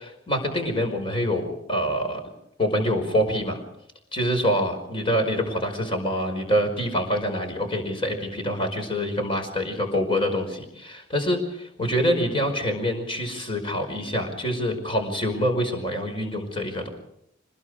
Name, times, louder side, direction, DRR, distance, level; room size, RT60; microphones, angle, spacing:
voice 1, 0.0-2.2 2.6-3.6 4.1-16.9, equal, 30° left, 5 dB, 5.0 m, -26 dB
26.5 x 21.0 x 5.0 m, 0.77 s
head